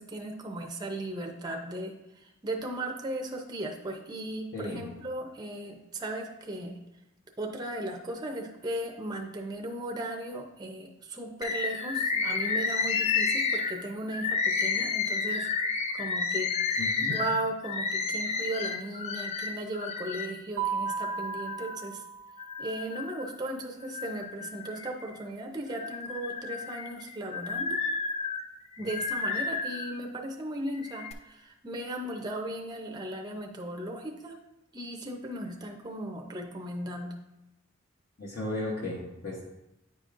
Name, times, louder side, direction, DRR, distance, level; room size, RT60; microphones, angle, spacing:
voice 1, 0.0-6.8 7.4-15.5 15.9-22.0 22.6-27.8 28.8-34.4 34.7-37.2, right 1 dB, 20° right, 2 dB, 0.6 m, -36 dB
voice 2, 4.5-4.8 16.8-17.2 38.2-39.4, left 2 dB, 50° left, -5 dB, 1.0 m, -35 dB
Bird, 11.4-20.3 20.9-21.9 22.4-23.4 23.8-25.2 25.7-30.0 30.7-31.1, left 5 dB, 30° left, 0.4 m, -31 dB
Mallet percussion, 20.6-22.6, right 6 dB, 65° right, 0.5 m, -34 dB
9.2 x 5.2 x 2.5 m, 0.93 s
head